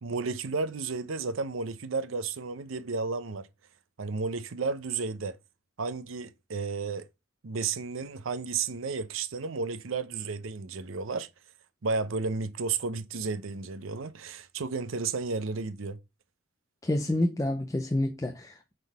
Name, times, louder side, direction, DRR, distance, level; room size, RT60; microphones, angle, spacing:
voice 1, 0.0-3.5 4.0-5.4 5.8-7.1 7.4-11.3 11.8-16.0, right 4 dB, 80° right, 0.6 m, -32 dB
voice 2, 16.8-18.7, left 1 dB, 15° left, 0.5 m, -28 dB
5.5 x 3.8 x 4.8 m
head